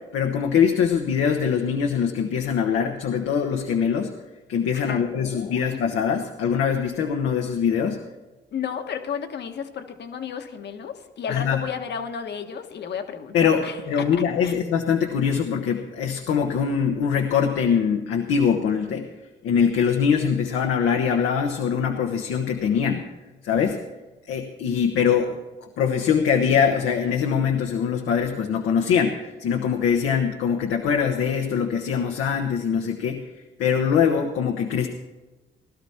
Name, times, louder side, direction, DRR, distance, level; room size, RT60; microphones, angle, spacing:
voice 1, 0.1-4.1 4.5-8.0 11.3-11.6 13.3-19.1 19.4-23.0 23.4-23.8 24.3-25.4 25.8-33.3 33.6-34.9, left 7 dB, 85° left, 3 dB, 1.2 m, -23 dB
voice 2, 4.7-5.8 8.5-14.6, left 7 dB, 60° left, 6 dB, 1.4 m, -33 dB
17.5 x 12.0 x 4.3 m, 1.2 s
cardioid pair, 90°, 20 cm